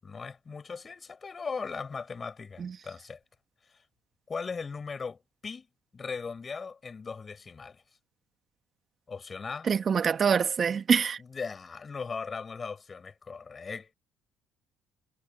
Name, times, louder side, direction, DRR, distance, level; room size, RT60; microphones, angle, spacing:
voice 1, 0.0-3.2 4.3-5.7 5.9-7.8 9.1-9.7 11.2-13.9, left 5 dB, 35° left, 7.9 m, -38 dB
voice 2, 9.7-11.2, right 6 dB, 45° right, 2.3 m, -25 dB
hypercardioid pair, 60°, 0 cm